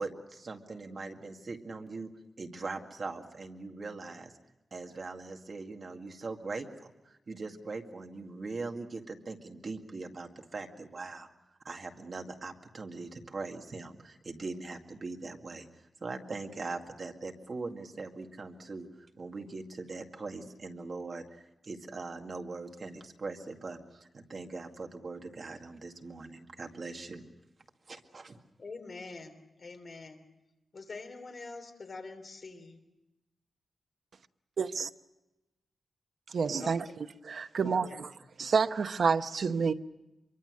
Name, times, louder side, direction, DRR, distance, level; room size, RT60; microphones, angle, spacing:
voice 1, 0.0-2.1 2.4-4.3 4.7-11.3 11.6-15.7 16.0-27.2 27.9-28.4, right 3 dB, 45° right, 2.1 m, -41 dB
voice 2, 28.6-30.2 30.7-32.8 36.6-37.0 37.6-38.0, left 3 dB, 45° left, 3.4 m, -45 dB
voice 3, 34.6-34.9 36.3-36.8 37.2-38.1 38.4-39.7, right 5 dB, 60° right, 0.9 m, -28 dB
26.0 x 23.5 x 6.5 m
wide cardioid pair, 170°, 0 cm